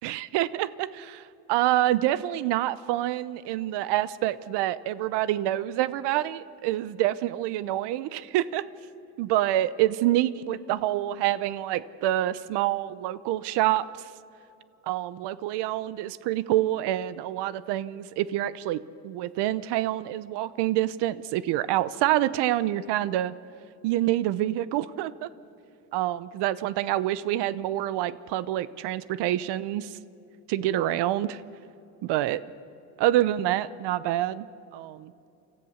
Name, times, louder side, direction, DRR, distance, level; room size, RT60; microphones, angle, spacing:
voice 1, 0.0-8.6 9.2-14.1 14.9-23.3 23.8-25.3 25.9-30.0 30.5-31.4 32.0-32.4 33.0-34.5 34.7-35.1, right 14 dB, 80° right, 17 dB, 0.8 m, -27 dB
25.5 x 14.0 x 7.1 m, 2.7 s
cardioid pair, 120°, 40 cm